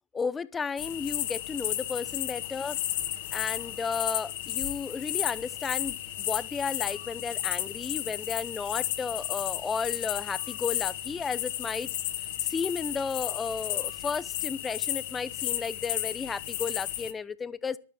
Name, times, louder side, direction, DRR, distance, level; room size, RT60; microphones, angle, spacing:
voice 1, 0.1-2.8 3.3-11.9 12.4-17.8, left 5 dB, 15° left, 0.8 m, -33 dB
sound 1, 0.8-17.1, left 14 dB, 55° left, 1.9 m, -33 dB
11.5 x 9.3 x 8.0 m
hypercardioid pair, 125°, 0 cm